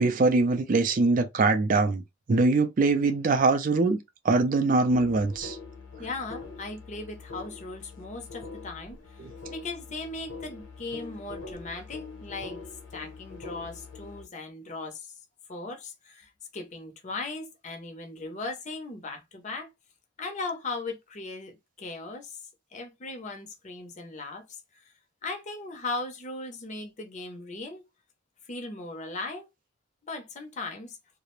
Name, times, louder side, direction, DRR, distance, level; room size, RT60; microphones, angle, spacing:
voice 1, 0.0-2.0 2.3-4.0 4.2-5.6 9.2-9.3, right 3 dB, 40° right, 0.4 m, -23 dB
sound 1, 4.9-14.2, left 4 dB, 70° left, 0.8 m, -43 dB
voice 2, 6.0-12.6 12.9-15.1 15.5-19.7 20.2-22.4 22.7-24.8 25.2-27.8 28.5-29.5 30.1-31.0, left 3 dB, 35° left, 0.6 m, -38 dB
2.4 x 2.0 x 3.0 m
head